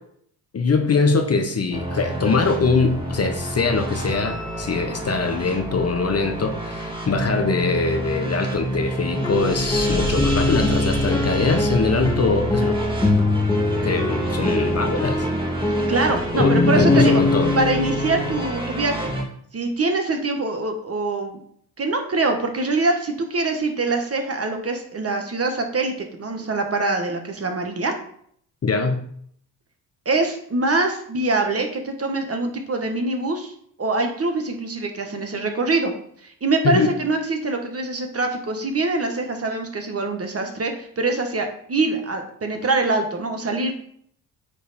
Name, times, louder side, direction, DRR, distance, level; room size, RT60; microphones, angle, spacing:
voice 1, 0.5-12.8 13.8-15.2 16.3-17.5 28.6-29.1 36.6-36.9, left 4 dB, 30° left, 6 dB, 1.0 m, -22 dB
sound 1, 1.7-19.2, right 1 dB, 10° right, 2.2 m, -28 dB
sound 2, 9.1-18.5, left 2 dB, 10° left, 0.8 m, -23 dB
voice 2, 15.7-17.2 17.6-19.1 19.5-21.4 21.8-27.9 30.0-33.5 33.8-35.9 36.2-43.7, right 3 dB, 30° right, 4 dB, 1.5 m, -24 dB
9.0 x 3.4 x 4.3 m, 0.64 s
hypercardioid pair, 65°, 46 cm